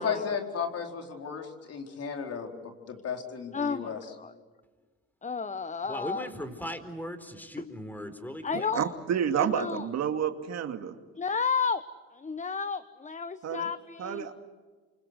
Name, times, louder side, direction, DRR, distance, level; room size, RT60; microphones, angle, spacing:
voice 1, 0.0-4.0, left 6 dB, 55° left, 3 dB, 4.5 m, -34 dB
voice 2, 3.5-4.3 5.2-6.3 8.4-8.9 9.4-9.8 11.2-11.8 12.1-14.3, left 5 dB, 25° left, 13 dB, 1.1 m, -32 dB
voice 3, 5.9-8.7, equal, 5° left, 10 dB, 4.3 m, -38 dB
voice 4, 8.7-10.9 13.4-13.7 14.0-14.3, right 8 dB, 60° right, 7 dB, 2.4 m, -29 dB
28.5 x 25.5 x 8.1 m, 1.4 s
supercardioid pair, 70°, 29 cm